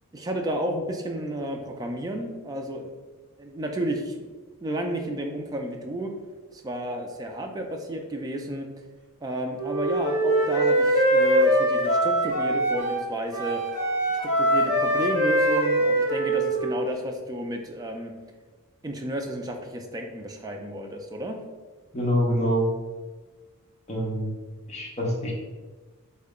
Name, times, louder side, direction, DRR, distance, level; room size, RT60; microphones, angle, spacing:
voice 1, 0.1-2.9 3.4-4.1 4.6-6.1 6.5-8.7 9.2-13.6 14.4-18.1 18.8-21.4, right 1 dB, 15° right, 3 dB, 0.3 m, -32 dB
Wind instrument woodwind instrument, 9.6-13.0 13.3-16.9, right 1 dB, 70° left, 1.0 m, -23 dB
voice 2, 21.9-22.7 23.9-24.3 24.7-25.3, equal, 30° left, -3 dB, 0.8 m, -25 dB
3.6 x 2.1 x 3.6 m, 1.3 s
head